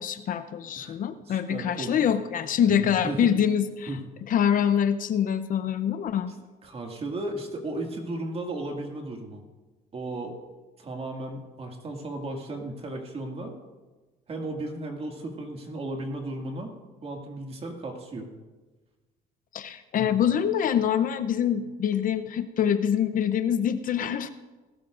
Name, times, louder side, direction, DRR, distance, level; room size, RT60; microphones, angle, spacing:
voice 1, 0.0-3.9 4.3-6.3 19.5-24.3, left 9 dB, 55° left, 10 dB, 0.7 m, -25 dB
voice 2, 1.3-2.1 2.7-3.3 3.9-4.0 6.6-9.4 9.9-10.4 10.8-13.6 14.3-16.7 17.0-18.3 20.0-20.1, right 2 dB, 35° right, 2 dB, 2.1 m, -35 dB
18.5 x 12.5 x 2.6 m, 1.2 s
cardioid pair, 110°, 17 cm